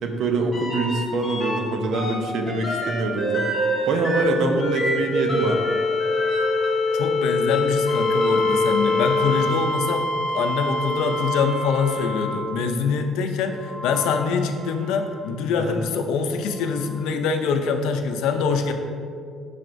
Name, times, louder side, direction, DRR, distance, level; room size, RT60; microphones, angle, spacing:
voice 1, 0.0-3.6 3.9-5.6 8.5-8.6 15.6-15.8, right 2 dB, 55° right, 4 dB, 0.7 m, -24 dB
sound 1, 0.5-1.6 1.9-12.7 13.6-15.1 16.8-16.9, left 1 dB, ahead, 1.6 m, -25 dB
voice 2, 6.9-10.1 10.3-18.7, left 5 dB, 90° left, 6 dB, 0.5 m, -24 dB
7.5 x 5.7 x 2.6 m, 2.2 s
cardioid pair, 175°, 0 cm